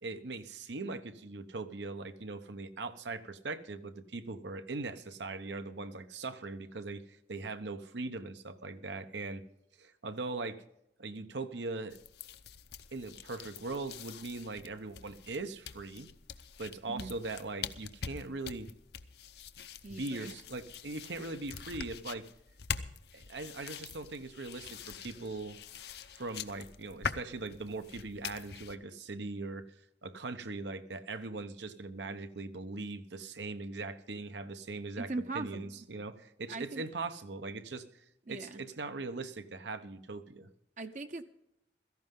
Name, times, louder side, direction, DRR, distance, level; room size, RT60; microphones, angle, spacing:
voice 1, 0.0-9.4 9.8-10.6 11.0-12.0 12.9-16.1 16.6-18.7 19.9-22.3 23.1-25.6 26.1-29.7 30.0-40.5, right 3 dB, 80° right, 10 dB, 1.0 m, -40 dB
sound 1, 11.9-28.8, left 6 dB, 65° left, 0.7 m, -44 dB
voice 2, 19.8-20.3 35.0-35.7 36.5-36.8 38.3-38.6 40.8-41.2, right 3 dB, 45° right, 6 dB, 0.7 m, -40 dB
16.5 x 14.0 x 3.7 m, 0.81 s
head